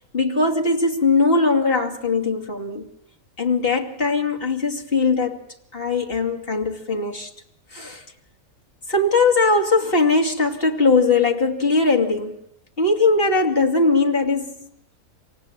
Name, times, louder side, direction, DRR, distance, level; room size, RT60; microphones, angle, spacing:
voice 1, 0.1-2.9 3.4-5.4 5.7-7.3 7.7-8.0 8.9-12.4 12.8-14.5, left 3 dB, 40° left, 2.9 m, -20 dB
27.5 x 18.5 x 8.9 m
omnidirectional pair, 1.5 m